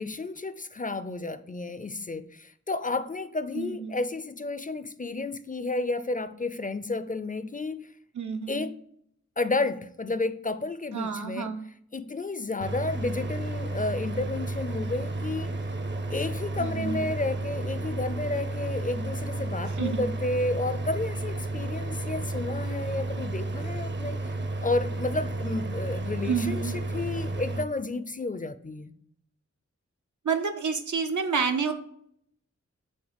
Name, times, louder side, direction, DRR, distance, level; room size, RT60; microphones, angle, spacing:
voice 1, 0.0-7.9 8.5-8.8 9.4-11.6 11.9-15.5 16.1-24.2 24.6-28.9, left 3 dB, 30° left, 0.4 m, -31 dB
voice 2, 3.5-3.9 8.2-8.6 10.9-11.7 16.6-17.0 19.8-20.0 26.2-26.7 30.2-31.7, right 5 dB, 85° right, 0.7 m, -29 dB
sound 1, 12.6-27.6, right 2 dB, 40° right, 0.6 m, -32 dB
6.3 x 3.2 x 5.0 m
wide cardioid pair, 60°, 29 cm